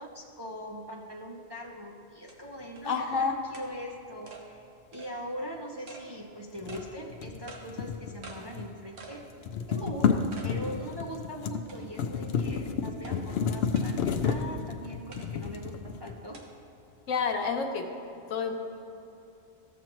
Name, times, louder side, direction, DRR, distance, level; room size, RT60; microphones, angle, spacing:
voice 1, 0.0-4.6 4.9-9.3 9.7-16.4, equal, 30° right, -2 dB, 0.5 m, -41 dB
sound 1, 1.6-1.7 2.3-2.4 2.8-2.9 3.5-3.7 4.3-4.4 4.9-5.1 5.9-6.0 6.7-6.9 7.5-7.6 8.2-8.4 9.0-9.2 9.6-9.7 10.3-10.5 11.0-11.1 11.7-12.1 13.0-13.1 13.7-13.9 15.1-15.3 16.3-16.4, right 4 dB, 75° right, 1.4 m, -46 dB
voice 2, 2.8-3.3 17.1-17.8 18.3-18.5, left 5 dB, 90° left, 4 dB, 1.2 m, -28 dB
sound 2, 6.6-8.8 9.1-16.4, left 6 dB, 65° left, 0.7 m, -31 dB
14.0 x 7.0 x 3.0 m, 2.9 s
omnidirectional pair, 1.3 m